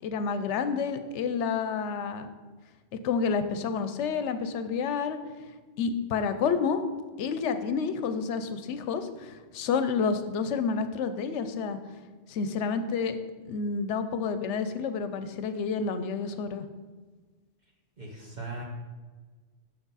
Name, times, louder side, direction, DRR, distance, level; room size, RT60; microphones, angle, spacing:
voice 1, 0.0-2.3 3.0-5.2 5.8-6.8 7.2-11.8 12.3-13.2 13.4-16.6, left 5 dB, 80° left, 10 dB, 0.9 m, -29 dB
voice 2, 18.0-18.6, right 3 dB, 40° right, -3 dB, 1.1 m, -38 dB
6.3 x 6.0 x 4.0 m, 1.4 s
omnidirectional pair, 1.2 m